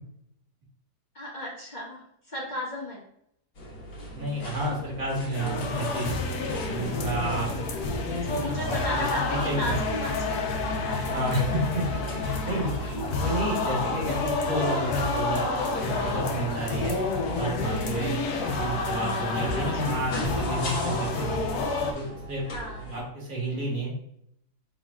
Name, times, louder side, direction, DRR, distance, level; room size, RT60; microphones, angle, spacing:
voice 1, 1.1-3.0 7.3-10.4 12.8-13.1 19.5-20.1 20.5-20.6 22.5-22.9, equal, 30° left, -5 dB, 1.0 m, -36 dB
sound 1, 3.5-23.0, equal, 50° left, 1.6 m, -40 dB
voice 2, 4.1-6.2 6.6-8.0 8.6-9.6 11.1-12.7 13.2-15.5 15.8-16.9 17.3-18.2 18.5-21.3 21.8-22.5 22.8-24.1, right 2 dB, 55° right, -5 dB, 2.1 m, -31 dB
sound 2, 5.3-21.9, left 3 dB, 65° left, 1.1 m, -29 dB
4.9 x 3.9 x 2.3 m, 0.73 s
omnidirectional pair, 1.9 m